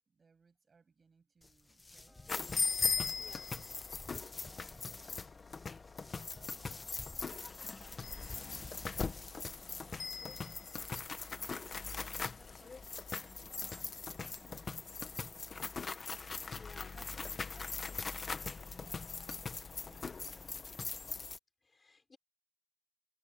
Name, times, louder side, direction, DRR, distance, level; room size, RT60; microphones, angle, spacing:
voice 1, 0.0-2.2 4.3-5.3 6.0-8.7 9.6-10.5 11.3-14.0 14.3-14.7 15.2-16.4 16.6-19.5 19.9-20.6, right 5 dB, 65° right, 7.8 m, -65 dB
sound 1, 1.4-9.8, left 2 dB, 30° left, 1.1 m, -54 dB
sound 2, 2.1-10.8, equal, ahead, 7.2 m, -66 dB
sound 3, 2.3-21.4, left 4 dB, 65° left, 1.1 m, -40 dB
voice 2, 3.2-3.5 16.5-16.9 17.5-17.7 21.6-22.2, left 4 dB, 50° left, 3.8 m, -58 dB
wide cardioid pair, 115°, 0 cm